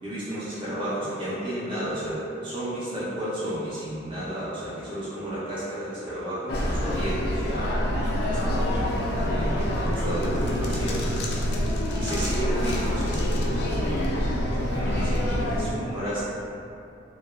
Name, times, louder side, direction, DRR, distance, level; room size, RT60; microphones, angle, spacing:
voice 1, 0.0-7.8 8.3-11.4 11.9-14.1 14.8-16.2, right 1 dB, 25° right, -12 dB, 0.4 m, -32 dB
sound 1, 6.5-15.7, equal, 55° left, 0.3 m, -26 dB
voice 2, 11.3-11.8 14.6-16.2, right 1 dB, 70° right, -10 dB, 1.0 m, -41 dB
3.0 x 2.1 x 2.2 m, 2.6 s
head